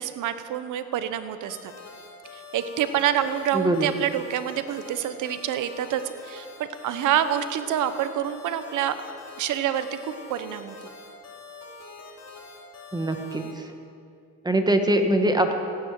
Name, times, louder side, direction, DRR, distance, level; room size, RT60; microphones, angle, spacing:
voice 1, 0.0-1.7 2.3-9.0 9.4-10.9, right 10 dB, 85° right, 11 dB, 1.1 m, -27 dB
sound 1, 1.5-13.5, left 4 dB, 55° left, 4.1 m, -44 dB
voice 2, 3.5-3.9 12.9-13.4 14.4-15.5, right 1 dB, 15° right, 5 dB, 1.7 m, -22 dB
16.5 x 9.5 x 9.2 m, 2.4 s
cardioid pair, 90°, 30 cm